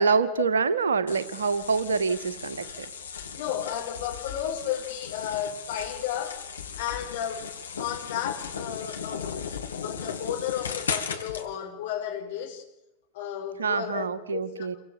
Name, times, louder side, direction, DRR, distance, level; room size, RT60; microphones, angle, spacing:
voice 1, 0.0-2.9 13.6-14.8, right 5 dB, 70° right, 11 dB, 1.9 m, -26 dB
sound 1, 1.1-11.5, left 6 dB, 70° left, 3.1 m, -37 dB
voice 2, 3.3-6.4 6.8-7.5 7.8-9.3 9.8-12.6 13.1-14.8, left 10 dB, 55° left, 2 dB, 6.5 m, -33 dB
28.5 x 23.5 x 7.2 m, 0.91 s
figure-of-eight pair, 90°, 0 cm